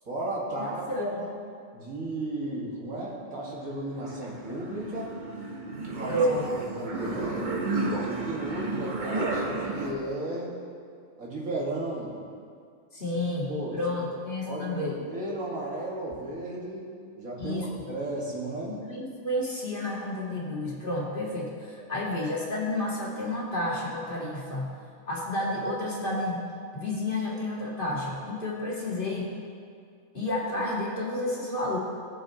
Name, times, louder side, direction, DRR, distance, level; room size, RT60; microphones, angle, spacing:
voice 1, 0.1-1.3 1.7-5.1 5.8-6.2 6.7-7.6 8.1-10.6 11.2-12.2 13.1-13.2 13.5-13.8 14.4-18.7 21.8-21.9, right 1 dB, 90° right, -5 dB, 2.5 m, -34 dB
voice 2, 0.9-1.3 6.1-6.5 12.9-15.0 17.4-17.7 18.7-24.7 25.1-26.5 26.7-29.3 30.1-31.8, left 1 dB, 40° left, -5 dB, 2.0 m, -30 dB
sound 1, 3.5-9.9, right 2 dB, 40° right, 1.1 m, -32 dB
19.0 x 6.6 x 3.1 m, 2.2 s
omnidirectional pair, 1.4 m